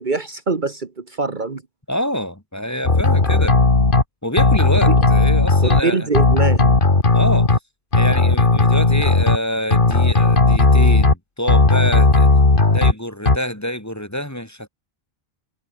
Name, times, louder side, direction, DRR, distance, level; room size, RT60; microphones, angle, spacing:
voice 1, 0.0-1.6 4.9-5.0 5.6-6.8, right 3 dB, 50° right, 1.6 m, -23 dB
voice 2, 1.9-3.6 4.2-6.1 7.1-7.5 7.9-12.3 12.7-14.7, equal, 15° left, 3.3 m, -26 dB
sound 1, 2.9-4.0 4.4-5.8 6.1-7.6 7.9-9.4 9.7-11.1 11.5-12.9 13.3-13.4, left 3 dB, 55° left, 2.6 m, -15 dB
omnidirectional pair, 1.1 m